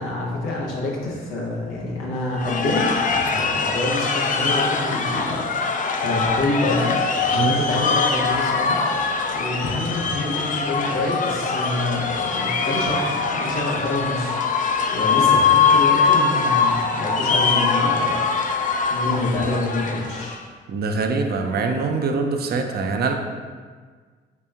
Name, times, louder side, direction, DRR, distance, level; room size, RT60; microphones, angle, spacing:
voice 1, 0.0-2.9 3.2-6.9 7.3-8.8 9.3-14.4 14.9-18.6 18.9-20.4, left 2 dB, 85° left, -3 dB, 0.8 m, -27 dB
sound 1, 2.4-20.4, left 5 dB, 40° left, 0.4 m, -22 dB
voice 2, 20.7-23.1, right 4 dB, 50° right, 4 dB, 0.5 m, -23 dB
3.3 x 2.9 x 3.5 m, 1.5 s
supercardioid pair, 50°, 20 cm